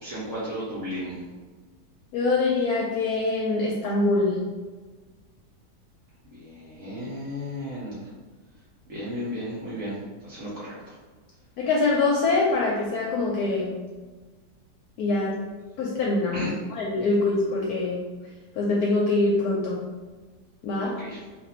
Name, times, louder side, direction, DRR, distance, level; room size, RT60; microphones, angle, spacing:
voice 1, 0.0-1.2 6.3-8.0 8.9-9.9 10.3-10.7 16.3-16.5 21.0-21.2, equal, 60° right, -8 dB, 1.1 m, -34 dB
voice 2, 2.1-4.4 11.6-13.7 15.0-15.3 15.8-18.0 18.5-19.8 20.6-21.0, left 3 dB, 70° left, -3 dB, 1.0 m, -24 dB
2.7 x 2.5 x 4.2 m, 1.3 s
omnidirectional pair, 1.8 m